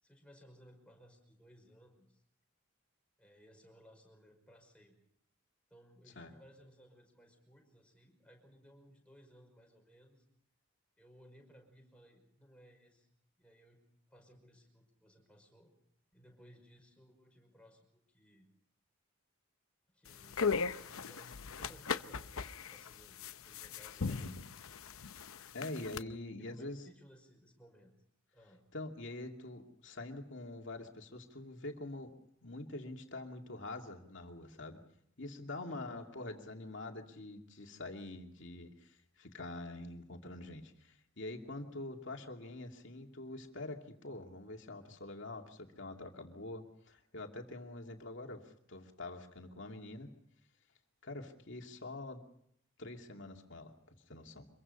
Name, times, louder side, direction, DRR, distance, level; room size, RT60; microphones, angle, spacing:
voice 1, 0.0-2.2 3.2-5.0 5.7-10.2 11.0-13.1 13.4-13.8 14.1-15.7 16.1-18.5 19.9-24.3 26.4-27.9 28.3-28.6 35.6-36.0, equal, 5° left, 1 dB, 5.5 m, -61 dB
sound 1, 20.1-26.0, left 5 dB, 75° left, 0.8 m, -38 dB
voice 2, 25.5-26.8 28.7-32.1 32.4-34.8 35.2-50.1 51.0-52.2 52.8-53.7 54.1-54.5, left 2 dB, 55° left, 3 dB, 2.6 m, -45 dB
25.5 x 23.0 x 5.5 m, 0.70 s
head